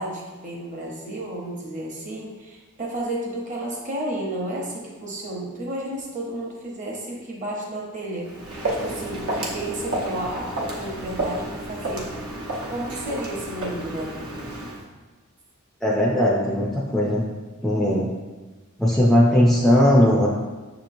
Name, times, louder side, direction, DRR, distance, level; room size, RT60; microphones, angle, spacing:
voice 1, 0.0-8.3 8.8-12.1 12.7-14.2, right 1 dB, 35° right, -2 dB, 0.9 m, -32 dB
Walk footsteps, 8.2-14.8, right 1 dB, 75° right, 0.9 m, -31 dB
voice 2, 15.8-17.2 17.6-18.1 18.8-20.3, left 1 dB, ahead, -4 dB, 0.4 m, -18 dB
6.4 x 2.9 x 2.6 m, 1.3 s
head